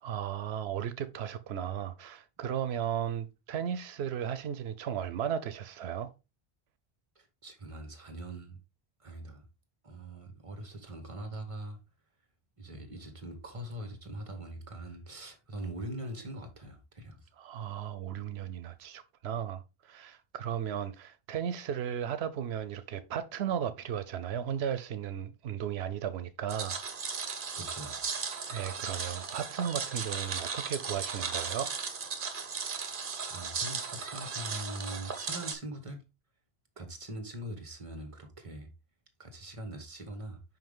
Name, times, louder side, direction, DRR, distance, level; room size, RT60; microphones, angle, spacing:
voice 1, 0.0-6.1 17.4-26.8 28.5-31.7, right 9 dB, 85° right, 0.8 m, -35 dB
voice 2, 7.1-8.6 9.0-9.5 9.8-11.8 12.6-17.3 27.6-28.0 33.3-36.0 36.8-38.7 39.2-40.4, right 1 dB, 30° right, 1.4 m, -42 dB
sound 1, 26.5-35.6, right 5 dB, 60° right, 1.1 m, -36 dB
5.8 x 5.1 x 3.5 m
omnidirectional pair, 1.0 m